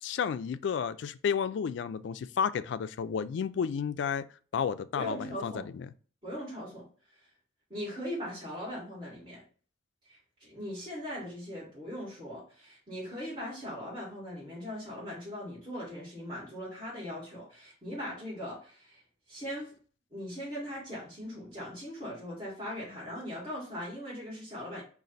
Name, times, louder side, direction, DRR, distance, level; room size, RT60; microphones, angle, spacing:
voice 1, 0.0-4.3 4.5-5.9, left 7 dB, 70° left, 0.3 m, -32 dB
voice 2, 4.9-5.7 6.2-6.8 7.7-9.4 10.1-19.0 19.3-19.7 20.1-24.8, equal, 25° right, 2.1 m, -40 dB
5.1 x 2.5 x 4.0 m
head